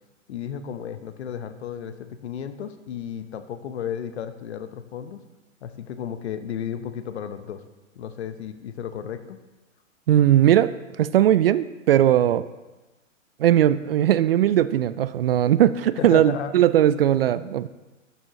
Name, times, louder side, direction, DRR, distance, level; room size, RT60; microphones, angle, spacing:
voice 1, 0.3-5.2 5.6-7.6 8.0-9.4 16.0-16.5, left 8 dB, 55° left, 10 dB, 1.0 m, -33 dB
voice 2, 10.1-12.5 13.4-17.7, right 11 dB, 50° right, 15 dB, 0.5 m, -19 dB
12.0 x 8.7 x 3.0 m, 1.1 s
figure-of-eight pair, 120°, 39 cm